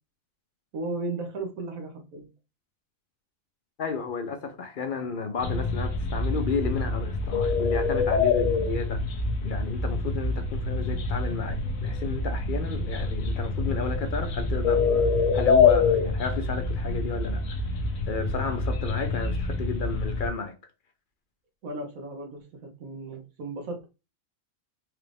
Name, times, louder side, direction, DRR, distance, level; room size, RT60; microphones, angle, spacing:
voice 1, 0.7-2.3 21.6-23.9, right 2 dB, 85° right, 1.4 m, -35 dB
voice 2, 3.8-9.0 9.4-15.1 15.3-17.6 18.1-20.5, left 5 dB, 55° left, 0.6 m, -32 dB
sound 1, 5.4-20.3, left 4 dB, 75° left, 1.2 m, -26 dB
4.5 x 2.5 x 3.3 m
omnidirectional pair, 1.4 m